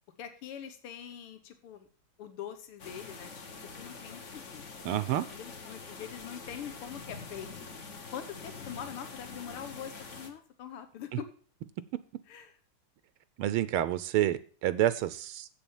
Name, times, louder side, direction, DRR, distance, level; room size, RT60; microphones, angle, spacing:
voice 1, 0.2-1.9 2.2-4.7 5.1-7.5 8.1-11.3 12.3-12.6, left 9 dB, 80° left, 2.0 m, -43 dB
sound 1, 2.8-10.3, left 4 dB, 40° left, 1.3 m, -45 dB
voice 2, 4.8-5.2 13.4-15.5, right 12 dB, 85° right, 1.5 m, -28 dB
7.9 x 7.2 x 7.2 m
omnidirectional pair, 2.4 m